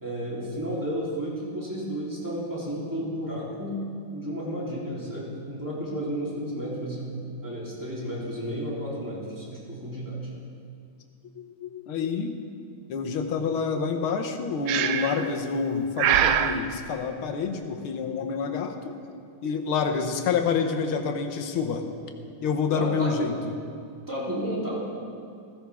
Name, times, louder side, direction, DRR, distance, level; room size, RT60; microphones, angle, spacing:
voice 1, 0.0-3.8 4.1-7.1 7.4-10.2 22.7-23.4 24.1-24.8, equal, 10° right, -7 dB, 3.2 m, -32 dB
voice 2, 11.4-12.4 12.9-19.0 19.4-21.9 22.4-23.5, left 5 dB, 80° left, 5 dB, 1.8 m, -28 dB
Breathing, 14.7-15.3 16.0-16.6, right 10 dB, 80° right, 1.4 m, -23 dB
15.5 x 15.5 x 3.5 m, 2.3 s
omnidirectional pair, 2.3 m